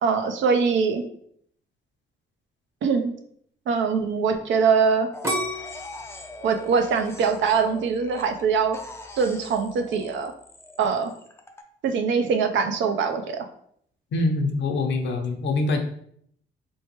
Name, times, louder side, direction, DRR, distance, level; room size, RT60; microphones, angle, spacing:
voice 1, 0.0-1.0 2.8-3.1 3.7-5.1 6.4-8.8 9.2-10.3 10.8-11.1 11.8-13.4, right 5 dB, 70° right, 5 dB, 0.5 m, -22 dB
sound 1, 5.1-8.4 8.7-11.6, left 2 dB, 15° left, 0.4 m, -43 dB
sound 2, 5.2-8.2 8.7-9.2, equal, 15° right, 0.7 m, -32 dB
voice 2, 14.1-15.8, left 2 dB, 65° left, 3 dB, 0.7 m, -24 dB
3.1 x 3.1 x 2.9 m, 0.66 s
cardioid pair, 90°, 20 cm